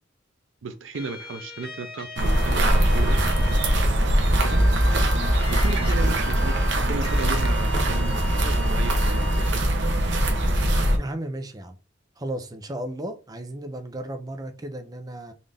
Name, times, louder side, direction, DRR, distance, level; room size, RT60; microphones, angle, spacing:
voice 1, 0.6-3.2 4.4-4.7 5.5-6.6 6.9-9.5, right 4 dB, 85° right, 0.5 m, -34 dB
sound 1, 0.9-3.8 4.4-9.5, left 4 dB, 55° left, 1.2 m, -39 dB
sound 2, 2.2-11.0, right 1 dB, 65° right, 0.8 m, -21 dB
voice 2, 10.9-11.8 12.2-15.3, right 1 dB, 20° right, 0.5 m, -34 dB
3.9 x 2.5 x 3.3 m
head